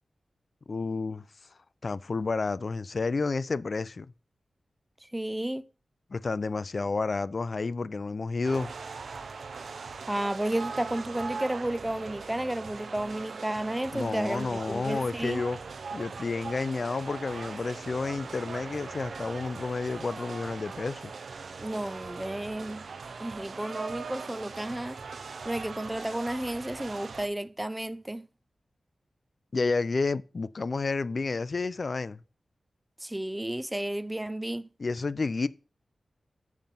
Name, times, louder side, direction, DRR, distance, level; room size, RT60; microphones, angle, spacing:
voice 1, 0.7-1.2 1.8-4.1 6.1-8.7 13.9-15.6 15.9-21.1 29.5-32.2 34.8-35.5, left 3 dB, 55° left, 0.4 m, -30 dB
voice 2, 5.1-5.7 10.1-15.4 21.6-22.9 23.2-25.0 25.5-28.2 33.0-34.7, right 1 dB, 10° right, 0.4 m, -32 dB
sound 1, 8.4-27.3, right 4 dB, 75° right, 0.6 m, -40 dB
7.2 x 5.3 x 5.8 m
wide cardioid pair, 85°, 0 cm